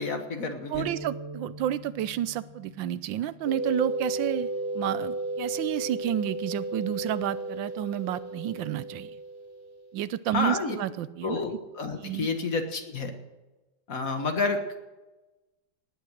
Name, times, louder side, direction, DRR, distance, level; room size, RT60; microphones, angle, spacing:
voice 1, 0.0-0.9 10.3-10.7 11.2-13.1 13.9-14.8, left 3 dB, 50° left, 6 dB, 1.8 m, -29 dB
sound 1, 0.7-7.0, right 2 dB, 45° right, 2.6 m, -46 dB
voice 2, 0.7-9.2 9.9-11.4 12.0-12.3, right 11 dB, 85° right, 16 dB, 1.4 m, -30 dB
sound 2, 3.4-10.0, right 2 dB, 15° left, 1.8 m, -34 dB
18.5 x 9.0 x 6.4 m, 1.1 s
omnidirectional pair, 2.0 m